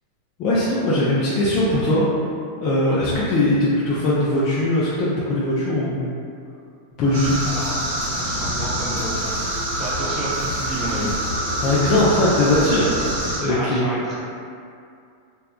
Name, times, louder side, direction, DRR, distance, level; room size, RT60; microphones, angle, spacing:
voice 1, 0.4-2.1 2.6-6.1 7.0-7.4 11.6-12.9 13.4-13.8, left 1 dB, 45° left, -8 dB, 0.4 m, -20 dB
voice 2, 2.9-3.2 7.1-7.2 7.4-7.8 8.1-9.4 9.7-11.1 13.5-14.2, right 1 dB, 30° right, -7 dB, 0.8 m, -31 dB
sound 1, 7.1-13.4, right 1 dB, 75° right, 0.8 m, -25 dB
2.6 x 2.2 x 2.2 m, 2.4 s
hypercardioid pair, 105°, 0 cm